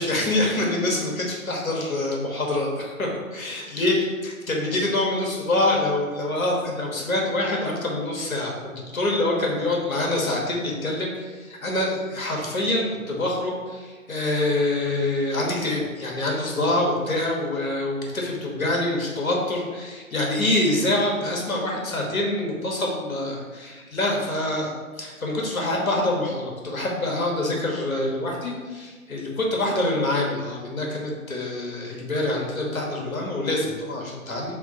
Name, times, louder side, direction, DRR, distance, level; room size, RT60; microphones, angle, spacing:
voice 1, 0.0-24.7 25.0-34.6, left 1 dB, 80° left, -1 dB, 1.4 m, -25 dB
3.6 x 3.6 x 3.8 m, 1.4 s
figure-of-eight pair, 135°, 42 cm